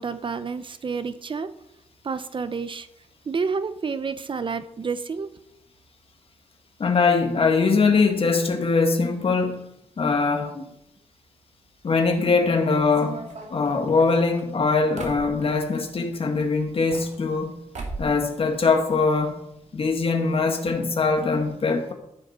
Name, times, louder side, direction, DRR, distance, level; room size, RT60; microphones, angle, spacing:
voice 1, 0.0-1.5 2.0-2.9 3.3-5.3, right 5 dB, 40° right, 0.7 m, -29 dB
voice 2, 6.8-10.7 11.8-13.2 13.5-17.6 18.0-19.4 19.7-21.9, left 4 dB, 45° left, 1.9 m, -22 dB
sound 1, 12.9-15.8 16.7-17.5 17.7-18.2 18.5-19.3 19.6-19.7 19.9-20.0 20.7-20.8 21.1-21.2, right 3 dB, 65° right, 2.4 m, -38 dB
14.0 x 10.0 x 4.3 m
wide cardioid pair, 150°, 13 cm